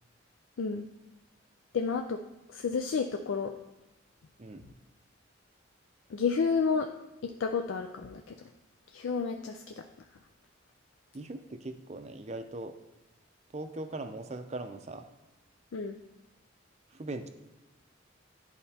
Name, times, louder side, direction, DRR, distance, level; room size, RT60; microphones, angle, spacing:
voice 1, 1.7-2.2 2.5-3.5 6.1-6.9 7.4-8.2 8.9-9.8 15.7-16.0, left 5 dB, 75° left, 4 dB, 0.4 m, -30 dB
voice 2, 11.1-12.7 13.5-15.1 16.9-17.3, right 2 dB, 35° right, 7 dB, 0.5 m, -40 dB
11.0 x 4.2 x 2.8 m, 1.1 s
head